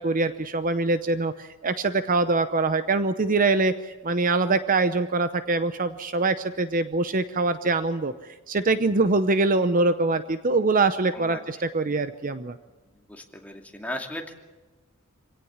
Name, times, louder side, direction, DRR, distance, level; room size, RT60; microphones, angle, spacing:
voice 1, 0.0-8.1 8.5-12.6, right 3 dB, 40° right, 11 dB, 0.8 m, -24 dB
voice 2, 13.1-14.3, left 1 dB, 5° left, 1 dB, 2.5 m, -36 dB
26.0 x 17.5 x 7.3 m, 1.2 s
head